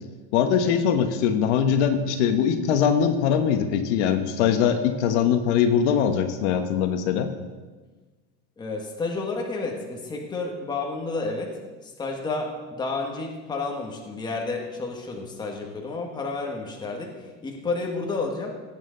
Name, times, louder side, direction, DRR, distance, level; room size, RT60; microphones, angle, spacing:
voice 1, 0.3-7.3, left 8 dB, 75° left, 7 dB, 1.3 m, -22 dB
voice 2, 8.6-18.5, left 3 dB, 10° left, 1 dB, 1.3 m, -31 dB
16.5 x 9.0 x 3.9 m, 1.3 s
cardioid pair, 170°, 36 cm